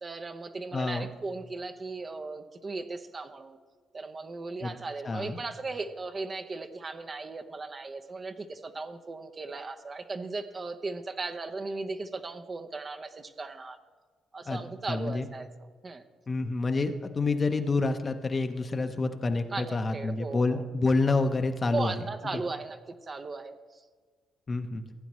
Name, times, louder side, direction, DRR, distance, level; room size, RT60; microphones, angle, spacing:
voice 1, 0.0-3.6 3.9-13.8 14.3-15.5 15.8-16.0 19.5-20.6 21.7-23.8, right 3 dB, 35° right, 8 dB, 0.7 m, -37 dB
voice 2, 0.7-1.1 4.6-4.7 5.0-5.4 14.5-14.6 14.9-15.3 16.3-22.0 22.3-22.4 24.5-24.8, left 3 dB, 30° left, 7 dB, 0.8 m, -28 dB
16.0 x 9.2 x 3.1 m, 1.5 s
cardioid pair, 90°, 0 cm